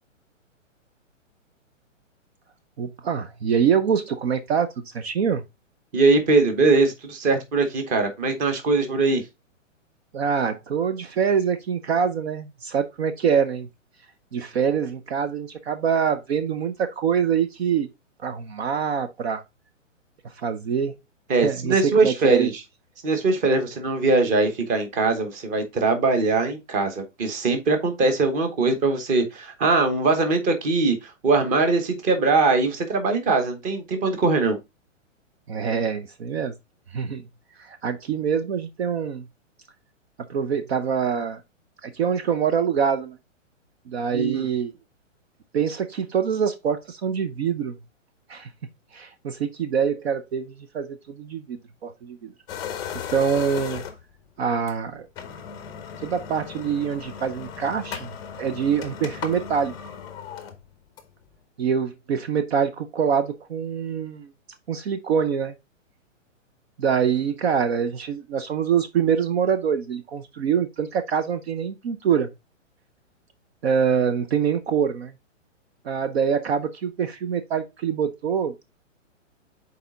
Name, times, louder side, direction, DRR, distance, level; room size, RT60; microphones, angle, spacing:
voice 1, 2.8-5.4 10.1-13.7 14.3-17.9 18.2-19.4 20.2-20.9 21.4-22.5 35.5-36.5 36.9-37.2 37.6-39.3 40.3-41.4 41.8-43.2 43.9-44.7 45.5-47.7 48.3-48.5 48.9-52.3 53.1-53.8 54.4-55.1 56.0-59.7 61.6-64.3 64.7-65.5 66.8-72.3 73.6-75.1 75.8-78.5, right 7 dB, 55° right, 0.7 m, -25 dB
voice 2, 5.9-9.2 21.3-22.5 23.0-31.0 31.2-34.6 44.1-44.4, right 3 dB, 20° right, 1.1 m, -21 dB
sound 1, 52.5-54.2 54.7-54.8 55.1-61.2, left 8 dB, 10° left, 0.6 m, -36 dB
6.7 x 4.2 x 3.7 m
hypercardioid pair, 150°, 38 cm